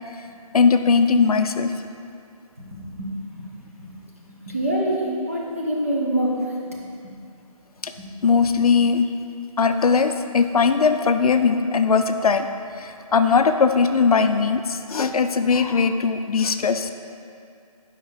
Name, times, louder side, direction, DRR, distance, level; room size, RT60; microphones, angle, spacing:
voice 1, 0.5-1.7 7.8-7.9 8.2-9.1 9.6-12.5 12.7-16.9, left 5 dB, 80° left, 8 dB, 0.4 m, -19 dB
voice 2, 2.6-3.4 3.9-4.0 4.5-6.3, right 1 dB, 25° right, -4 dB, 0.6 m, -25 dB
4.9 x 4.7 x 4.5 m, 2.4 s
hypercardioid pair, 175°, 19 cm